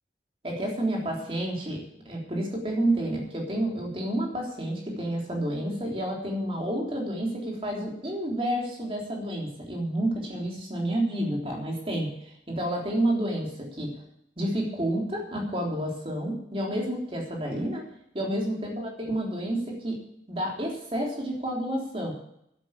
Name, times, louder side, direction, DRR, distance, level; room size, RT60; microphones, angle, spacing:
voice 1, 0.4-1.8 2.1-13.9 14.4-17.8 18.1-20.0 20.3-22.1, right 1 dB, 30° right, -1 dB, 3.5 m, -30 dB
10.5 x 8.8 x 8.3 m, 0.74 s
head